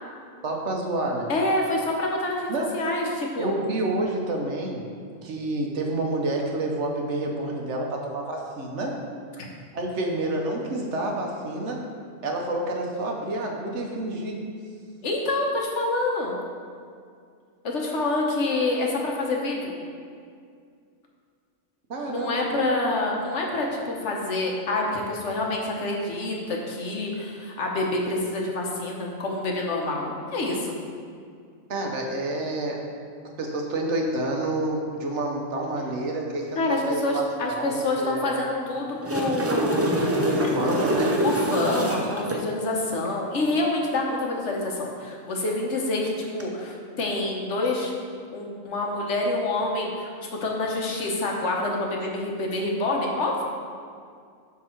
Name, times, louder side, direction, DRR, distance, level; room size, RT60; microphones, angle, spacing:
voice 1, 0.4-1.3 2.5-2.8 3.4-4.9 5.2-9.0 9.7-11.9 12.2-14.5 21.9-22.4 31.7-32.9 33.4-36.6 36.9-38.3 40.2-41.2, right 2 dB, 70° right, 1 dB, 1.2 m, -28 dB
voice 2, 1.3-3.5 9.4-9.5 15.0-16.3 17.6-19.7 22.1-30.7 36.6-40.0 40.4-40.7 41.2-50.1 50.4-53.4, left 2 dB, 70° left, -1 dB, 1.3 m, -27 dB
sound 1, 38.8-42.4 46.2-46.4, right 1 dB, 20° right, 0.4 m, -25 dB
11.0 x 3.7 x 4.4 m, 2.2 s
omnidirectional pair, 1.3 m